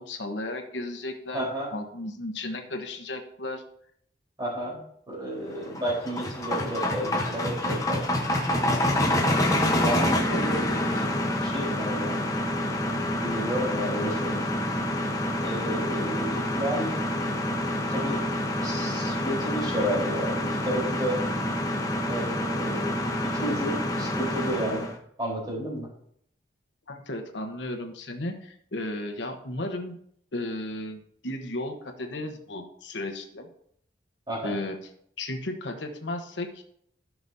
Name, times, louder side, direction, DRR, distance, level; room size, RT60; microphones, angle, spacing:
voice 1, 0.0-3.6 26.9-30.0 30.3-33.5 34.4-34.8 35.2-36.6, left 1 dB, 85° left, 5 dB, 1.1 m, -34 dB
voice 2, 1.3-1.7 4.4-4.8 5.1-8.0 9.0-10.7 10.9-11.1 11.4-12.2 13.2-14.5 15.4-16.9 17.9-18.2 18.6-21.2 22.0-24.9 25.2-25.9 34.3-34.6, equal, 25° right, -5 dB, 3.9 m, -32 dB
sound 1, 5.5-24.9, left 1 dB, 20° left, 1.0 m, -27 dB
13.0 x 6.0 x 2.7 m, 0.68 s
head